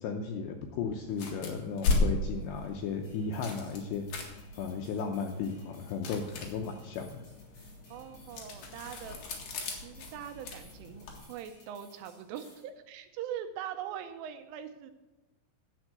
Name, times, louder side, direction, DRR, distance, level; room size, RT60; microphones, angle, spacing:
voice 1, 0.0-4.1 4.6-7.2, left 5 dB, 80° left, 3 dB, 2.5 m, -35 dB
sound 1, 1.1-11.2, left 3 dB, 55° left, 2.7 m, -36 dB
sound 2, 3.0-12.7, left 2 dB, 35° left, 6.1 m, -60 dB
voice 2, 7.9-9.2 9.8-14.9, right 9 dB, 80° right, 8 dB, 3.1 m, -42 dB
10.5 x 8.9 x 6.7 m, 1.1 s
omnidirectional pair, 6.0 m